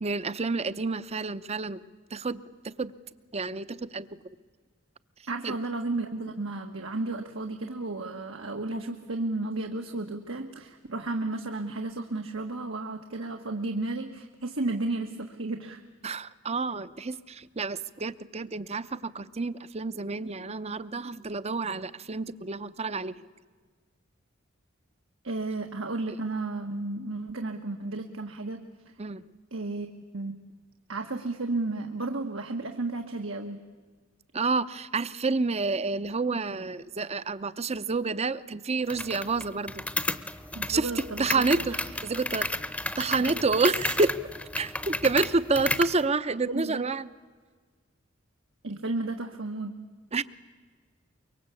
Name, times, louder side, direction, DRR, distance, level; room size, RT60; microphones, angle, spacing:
voice 1, 0.0-1.8 2.1-2.9 3.3-4.1 5.4-5.5 16.0-23.2 29.0-29.2 34.3-39.8 40.7-40.9 41.2-41.8 42.0-42.5 43.0-44.1 44.6-47.1 50.1-50.2, right 3 dB, 30° right, 15 dB, 0.8 m, -29 dB
voice 2, 5.3-15.8 25.2-28.6 29.5-30.4 30.9-33.6 40.5-41.8 43.2-43.5 46.5-46.9 48.6-49.8, right 2 dB, 80° right, 4 dB, 1.6 m, -33 dB
sound 1, 38.9-46.0, left 2 dB, 5° left, 0.9 m, -33 dB
24.5 x 23.5 x 8.4 m, 1.5 s
head